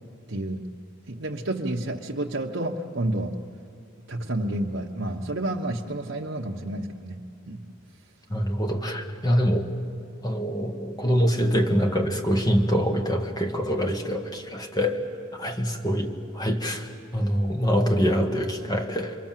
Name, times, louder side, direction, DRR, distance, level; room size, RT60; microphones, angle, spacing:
voice 1, 0.3-0.7 1.1-3.4 4.1-7.6 16.1-16.2, right 1 dB, 65° right, -2 dB, 1.2 m, -30 dB
voice 2, 8.3-9.7 10.2-15.1 15.4-19.2, equal, 20° left, 4 dB, 1.7 m, -25 dB
28.0 x 23.0 x 7.6 m, 2.5 s
head